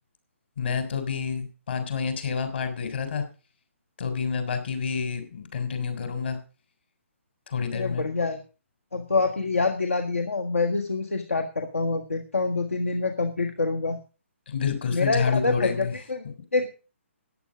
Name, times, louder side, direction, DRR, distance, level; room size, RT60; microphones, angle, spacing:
voice 1, 0.6-3.3 4.0-6.4 7.5-8.0 14.5-16.0, left 6 dB, 50° left, 8 dB, 3.6 m, -28 dB
voice 2, 7.7-8.4 8.9-14.0 14.9-16.2 16.5-16.7, left 3 dB, 70° left, 5 dB, 1.6 m, -26 dB
14.0 x 9.7 x 5.0 m, 0.34 s
figure-of-eight pair, 135°, 7 cm